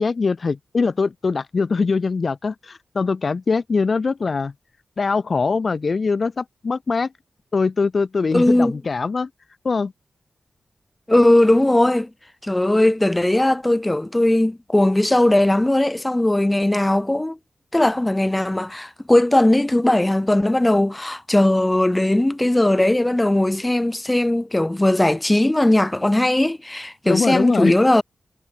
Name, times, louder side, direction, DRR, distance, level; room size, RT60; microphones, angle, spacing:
voice 1, 0.0-4.5 5.0-7.1 7.5-9.3 9.6-9.9 27.1-27.7, left 4 dB, 45° left, 2.3 m, -22 dB
voice 2, 8.3-8.7 11.1-12.1 12.4-17.4 17.7-28.0, left 1 dB, 10° left, 3.0 m, -18 dB
wide cardioid pair, 120°, 0 cm